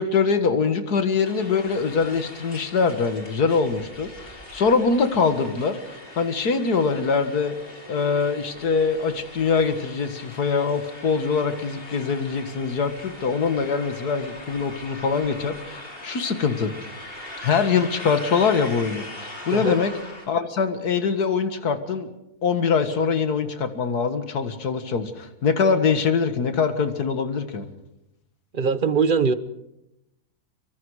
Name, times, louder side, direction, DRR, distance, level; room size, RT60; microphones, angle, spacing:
voice 1, 0.0-7.6 7.9-16.7 17.4-19.9 20.3-22.1 22.4-27.6, left 5 dB, 85° left, 9 dB, 2.2 m, -23 dB
sound 1, 1.2-20.3, left 1 dB, 35° left, 4.2 m, -41 dB
voice 2, 28.5-29.3, right 5 dB, 35° right, 13 dB, 1.1 m, -21 dB
25.0 x 24.0 x 4.9 m, 0.86 s
omnidirectional pair, 1.6 m